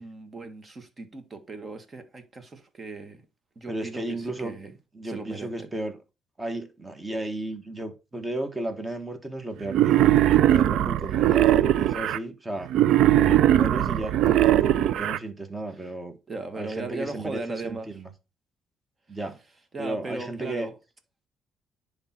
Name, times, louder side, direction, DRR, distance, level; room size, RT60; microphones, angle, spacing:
voice 1, 0.0-3.2 3.5-4.7 5.0-5.7 16.3-17.9 19.7-20.7, right 3 dB, 35° right, 1.6 m, -37 dB
voice 2, 3.7-4.6 4.9-6.0 6.4-12.7 13.1-16.2 16.5-18.1 19.1-19.4 19.8-20.7, right 2 dB, 20° right, 1.6 m, -34 dB
Wild animals, 9.7-12.2 12.7-15.2, right 12 dB, 80° right, 0.4 m, -20 dB
10.0 x 3.6 x 4.3 m
cardioid pair, 90°, 0 cm